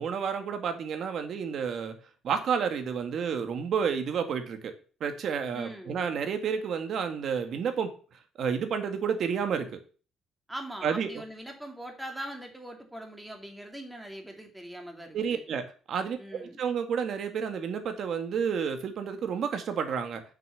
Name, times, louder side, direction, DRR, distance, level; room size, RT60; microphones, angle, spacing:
voice 1, 0.0-2.0 2.2-4.7 5.0-7.9 8.4-9.8 10.8-11.1 15.1-20.2, right 6 dB, 55° right, 7 dB, 1.9 m, -30 dB
voice 2, 5.5-6.0 10.5-15.4 16.2-16.6, right 1 dB, 5° right, 3 dB, 2.6 m, -41 dB
7.5 x 6.4 x 7.0 m, 0.39 s
cardioid pair, 130°, 0 cm